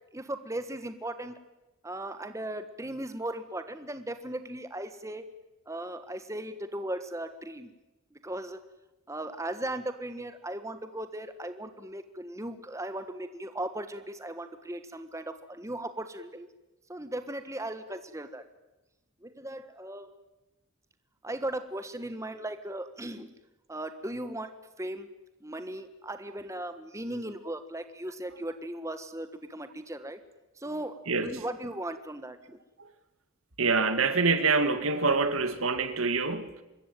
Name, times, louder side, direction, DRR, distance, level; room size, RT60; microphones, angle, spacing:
voice 1, 0.1-1.4 1.8-5.3 5.7-7.7 8.2-8.6 9.1-16.5 16.9-18.4 19.2-20.1 21.2-23.3 23.7-24.5 24.8-25.1 25.4-30.2 30.6-32.6, right 1 dB, 15° right, 1.4 m, -37 dB
voice 2, 31.1-31.4 33.6-36.6, right 4 dB, 80° right, 2.2 m, -26 dB
26.0 x 21.5 x 9.2 m
head